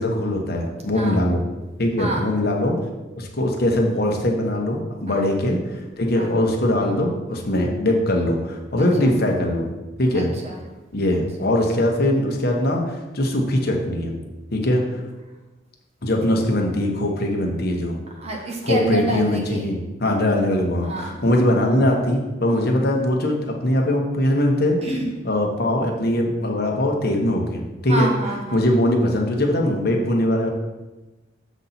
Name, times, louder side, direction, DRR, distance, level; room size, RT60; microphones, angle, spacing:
voice 1, 0.0-1.4 1.8-2.8 3.2-9.7 10.0-10.3 10.9-14.1 14.5-15.0 16.0-18.0 18.6-24.8 25.2-28.1 28.5-30.5, left 1 dB, 55° left, 1 dB, 1.2 m, -21 dB
voice 2, 2.0-2.3 5.1-5.3 6.1-6.3 8.8-9.1 10.1-10.6 18.2-19.7 20.8-21.4 22.5-22.7 24.8-25.1 27.9-28.6, right 2 dB, 35° right, 0 dB, 1.1 m, -28 dB
7.2 x 4.1 x 5.8 m, 1.1 s
head